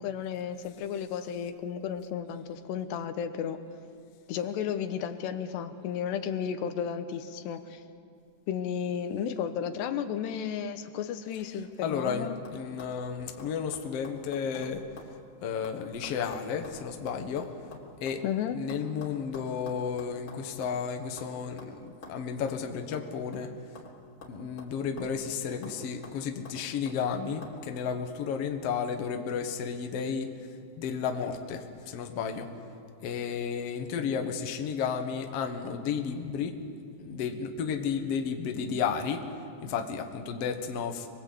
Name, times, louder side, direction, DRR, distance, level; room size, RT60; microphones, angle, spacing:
voice 1, 0.0-3.6 4.3-7.8 8.5-12.4 18.2-18.6, left 8 dB, 85° left, 9 dB, 3.2 m, -33 dB
sound 1, 11.3-11.7 12.1-12.2 12.4-15.2 15.4-18.2 18.7-20.8 21.2-21.3 21.6-21.7 22.0-22.2 22.5-22.6 22.9-23.9 24.2-25.3 25.6-25.8 26.0-27.0 27.4-27.6, left 3 dB, 35° left, 3.5 m, -48 dB
voice 2, 11.8-14.9 15.4-17.6 18.0-18.2 18.5-23.7 24.3-30.5 30.8-32.6 33.0-36.6 37.0-41.1, left 6 dB, 55° left, 5 dB, 1.7 m, -33 dB
26.5 x 22.0 x 8.4 m, 2.3 s
omnidirectional pair, 4.8 m